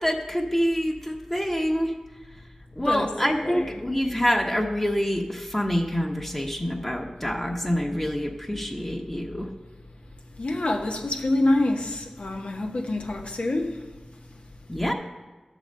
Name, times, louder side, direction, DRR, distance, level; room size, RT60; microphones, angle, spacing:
voice 1, 0.0-1.9 2.8-9.5 14.7-14.9, equal, 15° left, 1.1 m, -26 dB
voice 2, 2.8-3.8 10.3-14.4, left 2 dB, 70° left, 1.2 m, -27 dB
11.0 x 4.0 x 7.5 m
cardioid pair, 40°, 2 cm